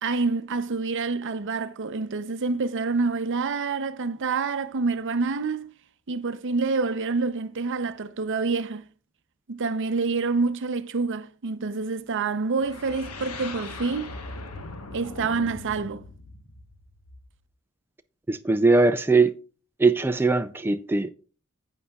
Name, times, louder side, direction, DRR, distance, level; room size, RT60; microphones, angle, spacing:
voice 1, 0.0-5.7 6.1-8.8 9.5-14.1 14.9-16.0, right 4 dB, 60° right, 0.6 m, -27 dB
sound 1, 12.6-17.4, left 3 dB, 85° left, 1.2 m, -40 dB
voice 2, 18.3-19.3 19.8-21.1, right 3 dB, 10° right, 0.3 m, -20 dB
11.0 x 8.3 x 2.3 m
head